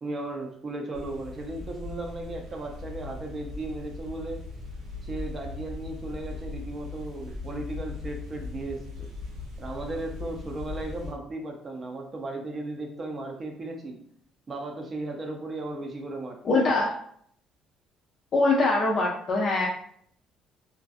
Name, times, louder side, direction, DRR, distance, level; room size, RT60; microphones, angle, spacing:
voice 1, 0.0-4.4 5.0-9.1 9.6-14.0 14.5-16.4, right 2 dB, 30° right, 2 dB, 0.5 m, -36 dB
sound 1, 0.9-11.1, left 3 dB, 75° right, 0.7 m, -39 dB
voice 2, 16.4-17.0 18.3-19.7, left 2 dB, 45° left, -2 dB, 0.4 m, -23 dB
2.5 x 2.3 x 2.4 m, 0.64 s
cardioid pair, 125°, 0 cm